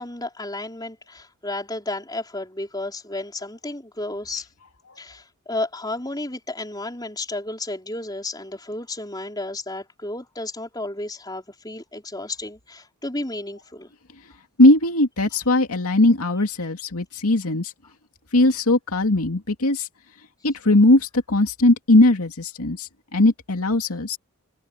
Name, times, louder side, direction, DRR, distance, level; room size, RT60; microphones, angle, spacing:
voice 1, 0.0-4.5 5.0-13.9, left 2 dB, 20° left, 5.0 m, -32 dB
voice 2, 14.6-17.7 18.3-19.9 20.4-24.2, left 2 dB, 80° left, 2.4 m, -19 dB
head